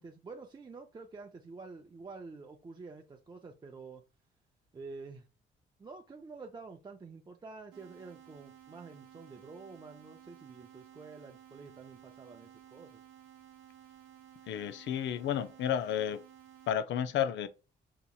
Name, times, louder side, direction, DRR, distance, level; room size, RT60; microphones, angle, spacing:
voice 1, 0.0-4.0 4.7-5.3 5.8-13.0, right 4 dB, 20° right, 0.5 m, -48 dB
sound 1, 7.7-16.7, right 11 dB, 90° right, 0.6 m, -56 dB
voice 2, 14.5-16.2 16.7-17.5, left 9 dB, 70° left, 0.4 m, -32 dB
3.9 x 2.9 x 2.3 m
cardioid pair, 90°, 20 cm